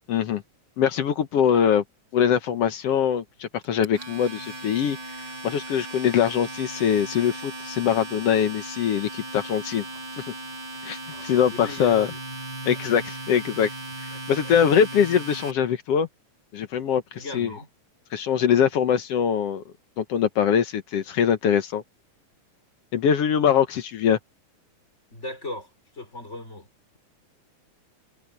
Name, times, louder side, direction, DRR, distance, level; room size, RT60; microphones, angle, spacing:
voice 1, 0.1-0.4 0.8-1.8 2.1-5.0 5.4-9.8 10.8-12.1 12.7-13.7 14.0-16.1 16.5-17.0 17.3-17.5 18.1-19.6 20.0-21.8 22.9-24.2, left 8 dB, 60° left, 1.9 m, -22 dB
Domestic sounds home sounds, 3.6-15.5, right 2 dB, 35° right, 6.1 m, -37 dB
voice 2, 11.1-12.2 12.9-13.0 14.1-14.5 17.1-17.7 25.1-26.7, left 2 dB, 20° left, 4.9 m, -39 dB
omnidirectional pair, 3.5 m